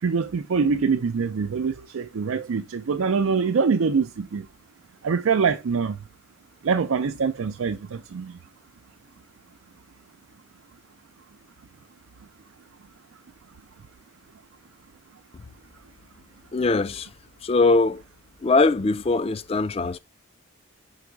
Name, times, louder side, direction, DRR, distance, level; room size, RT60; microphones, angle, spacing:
voice 1, 0.0-4.5 5.0-6.0 6.6-8.4, right 5 dB, 80° right, 0.4 m, -24 dB
voice 2, 16.5-17.1 17.4-18.0 18.4-20.0, left 3 dB, 30° left, 0.3 m, -21 dB
5.1 x 4.8 x 4.6 m
head